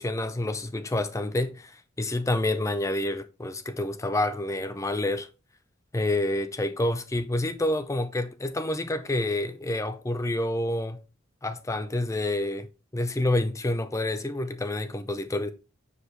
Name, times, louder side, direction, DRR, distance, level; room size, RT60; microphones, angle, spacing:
voice 1, 0.0-5.3 5.9-11.0 11.4-15.5, left 1 dB, 15° left, 0.5 m, -28 dB
5.9 x 5.0 x 3.2 m
head